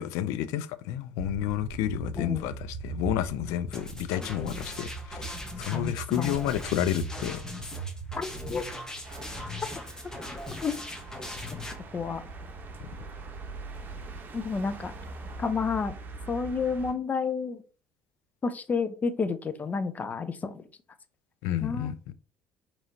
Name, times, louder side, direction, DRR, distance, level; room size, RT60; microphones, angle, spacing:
voice 1, 0.0-7.4 21.4-22.1, left 12 dB, 80° left, 0.4 m, -30 dB
sound 1, 1.2-9.4, right 4 dB, 85° right, 0.5 m, -40 dB
voice 2, 2.2-2.5 5.7-6.4 8.2-8.6 10.6-10.8 11.5-11.6 11.9-12.2 14.3-14.9 15.4-16.0 16.3-17.6 18.4-20.6 21.6-21.9, left 5 dB, 30° left, 0.6 m, -30 dB
sound 2, 3.7-11.7, left 1 dB, 10° left, 1.1 m, -40 dB
sound 3, 9.0-16.9, right 3 dB, 40° right, 0.9 m, -42 dB
4.9 x 3.0 x 2.7 m
supercardioid pair, 75°, 5 cm